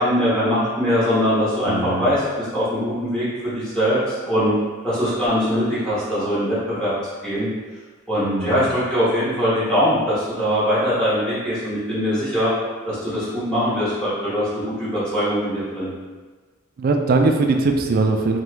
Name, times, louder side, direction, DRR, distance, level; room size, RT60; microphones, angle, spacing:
voice 1, 0.0-4.5 4.8-6.9 7.2-7.5 8.1-12.5 12.8-15.9, equal, 5° left, -11 dB, 0.9 m, -22 dB
voice 2, 1.7-2.1 8.2-8.7 16.8-18.4, right 3 dB, 50° right, 4 dB, 0.3 m, -20 dB
2.9 x 2.3 x 3.3 m, 1.4 s
head